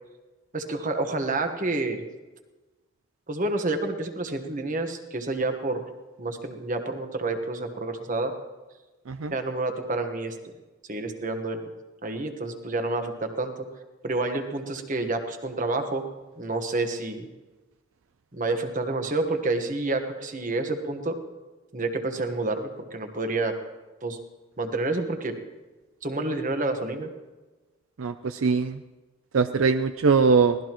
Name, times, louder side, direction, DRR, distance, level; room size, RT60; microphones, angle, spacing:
voice 1, 0.5-2.0 3.3-5.8 6.2-8.3 9.3-10.4 10.9-11.7 12.0-13.5 14.0-16.0 16.4-17.3 18.3-21.2 21.7-23.5 24.0-24.2 24.6-25.4 26.0-27.1, right 2 dB, 40° right, 6 dB, 1.3 m, -29 dB
voice 2, 28.0-28.8 29.3-30.6, right 5 dB, 70° right, 10 dB, 0.5 m, -21 dB
24.0 x 18.0 x 3.1 m, 1.2 s
head